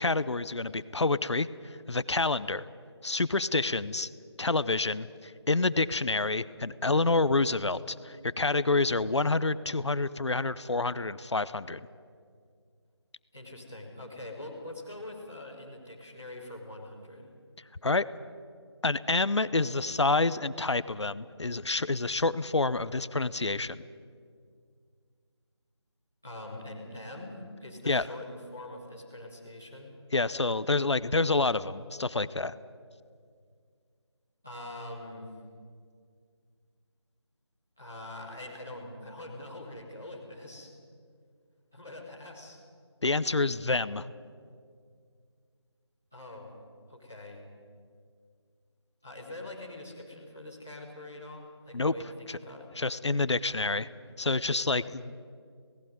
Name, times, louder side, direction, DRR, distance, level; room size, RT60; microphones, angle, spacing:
voice 1, 0.0-2.6 3.0-4.1 4.4-11.9 17.8-18.0 18.8-23.8 27.9-28.0 30.1-32.5 43.0-44.1 51.7-51.9 52.3-52.4 52.8-53.9 54.2-55.2, left 3 dB, 75° left, 16 dB, 0.8 m, -28 dB
voice 2, 13.3-17.3 26.2-29.9 34.4-35.3 37.8-40.7 41.7-42.6 46.1-46.5 46.9-47.4 49.0-52.7, left 1 dB, 5° left, -10 dB, 0.8 m, -43 dB
18.0 x 15.5 x 9.2 m, 2.1 s
figure-of-eight pair, 180°, 15 cm